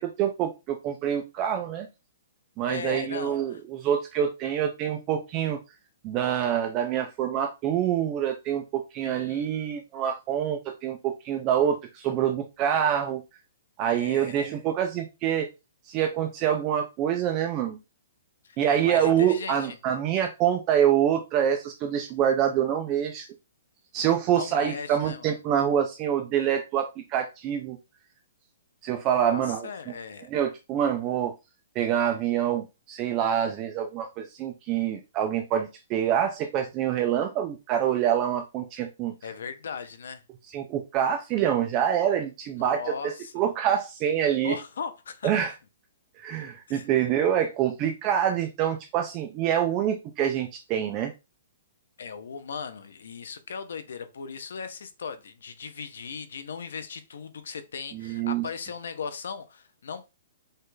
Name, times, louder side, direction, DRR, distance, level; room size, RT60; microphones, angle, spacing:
voice 1, 0.0-1.9 2.6-5.6 6.0-13.2 13.8-15.5 15.9-17.8 18.6-23.3 23.9-27.8 28.8-29.7 30.3-31.3 31.8-39.1 40.4-44.6 45.2-45.5 46.2-51.1 57.9-58.4, right 9 dB, 20° right, 0.4 m, -26 dB
voice 2, 2.7-3.6 9.0-9.5 13.8-14.5 18.4-19.8 24.3-25.3 29.3-30.3 39.2-40.2 42.6-43.4 44.4-45.3 46.7-46.9 52.0-60.1, left 6 dB, 70° left, 0.7 m, -38 dB
5.3 x 2.4 x 3.8 m
hypercardioid pair, 180°, 0 cm